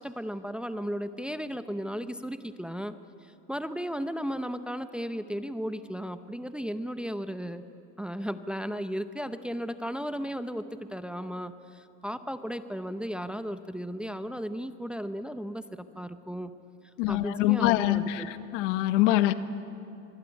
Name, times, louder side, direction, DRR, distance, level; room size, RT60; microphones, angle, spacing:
voice 1, 0.0-2.9 3.2-7.6 8.0-10.6 10.9-16.5 17.1-18.3, equal, 5° right, 10 dB, 0.8 m, -35 dB
voice 2, 17.0-19.3, left 15 dB, 75° left, 11 dB, 1.6 m, -24 dB
24.5 x 24.5 x 9.6 m, 2.8 s
supercardioid pair, 140°, 37 cm